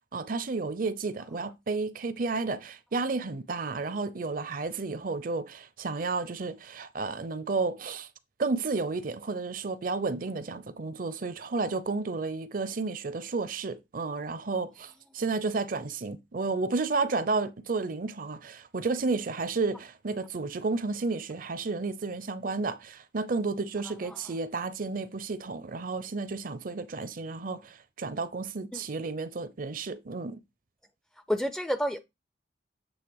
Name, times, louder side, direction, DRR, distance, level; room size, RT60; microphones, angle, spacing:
voice 1, 0.1-8.1 8.4-30.4, right 3 dB, 50° right, 0.6 m, -32 dB
voice 2, 23.8-24.3 28.7-28.8 31.3-32.0, equal, 5° left, 0.4 m, -31 dB
8.0 x 3.3 x 4.7 m
head